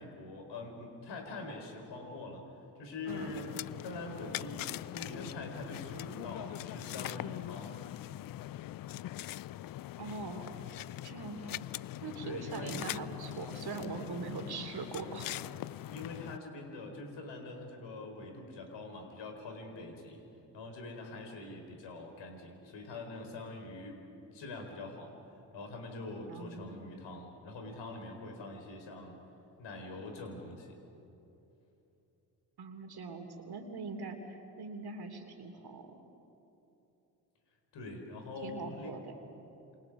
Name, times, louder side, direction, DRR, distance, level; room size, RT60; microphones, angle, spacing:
voice 1, 0.0-2.4 2.8-3.5 3.8-7.8 12.2-12.8 15.9-20.2 20.5-24.0 24.3-25.1 25.5-29.2 29.6-30.8 37.7-38.9, left 2 dB, 65° left, 3 dB, 4.9 m, -44 dB
sound 1, 3.1-16.4, left 14 dB, 50° left, 0.5 m, -42 dB
voice 2, 10.0-10.5 11.0-11.6 12.0-15.4 26.3-26.8 32.6-35.9 38.4-39.1, right 4 dB, 55° right, 6 dB, 3.1 m, -42 dB
28.5 x 28.0 x 5.0 m, 2.9 s
hypercardioid pair, 45°, 46 cm